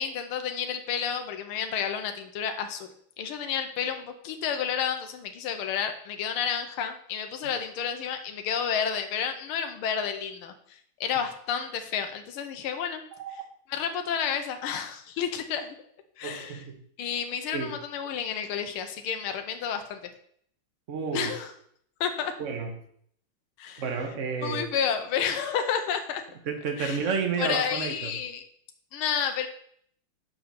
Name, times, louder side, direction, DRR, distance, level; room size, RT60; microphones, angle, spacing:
voice 1, 0.0-2.9 3.2-10.5 11.0-13.0 13.7-15.7 16.2-16.6 17.0-20.0 21.1-21.5 22.0-22.3 23.6-23.8 24.4-26.2 26.8-27.0 27.4-28.4 28.9-29.5, left 7 dB, 85° left, 6 dB, 1.7 m, -30 dB
voice 2, 13.1-13.5 16.2-16.8 17.5-17.7 20.9-21.3 22.4-22.7 23.8-24.7 26.5-28.1, right 5 dB, 45° right, 4 dB, 1.3 m, -31 dB
6.5 x 4.8 x 6.8 m, 0.64 s
omnidirectional pair, 2.4 m